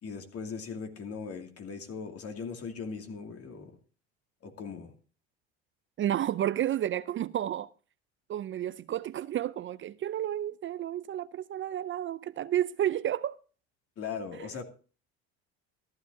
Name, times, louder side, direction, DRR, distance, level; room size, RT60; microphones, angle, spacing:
voice 1, 0.0-3.8 4.4-4.9 14.0-14.6, left 5 dB, 45° left, 2.5 m, -39 dB
voice 2, 6.0-7.7 8.3-13.4, right 11 dB, 40° right, 0.5 m, -31 dB
14.0 x 12.5 x 2.7 m
hypercardioid pair, 80°, 32 cm